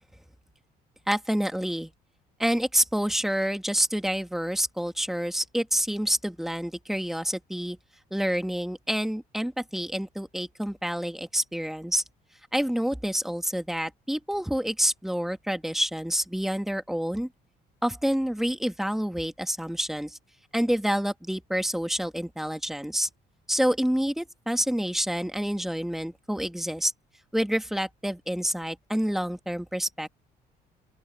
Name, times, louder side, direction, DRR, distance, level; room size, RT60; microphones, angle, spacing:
voice 1, 1.1-1.9 2.4-7.8 8.1-12.0 12.5-17.3 17.8-20.2 20.5-23.1 23.5-26.9 27.3-30.1, equal, ahead, 2.1 m, -28 dB
open air
cardioid pair, 110°, 17 cm